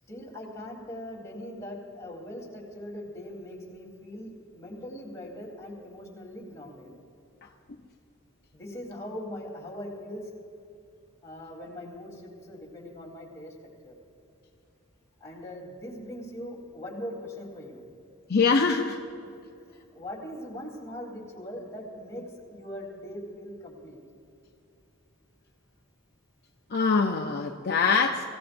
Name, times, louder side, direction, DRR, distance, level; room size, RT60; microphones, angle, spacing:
voice 1, 0.1-7.0 8.5-10.3 11.2-13.5 13.8-14.0 15.2-17.8 19.2-19.4 19.7-22.2 22.5-24.0, left 1 dB, 15° left, -4 dB, 3.6 m, -41 dB
voice 2, 18.3-19.0 26.7-28.3, left 5 dB, 50° left, 2 dB, 0.6 m, -23 dB
24.5 x 16.0 x 2.6 m, 2.5 s
head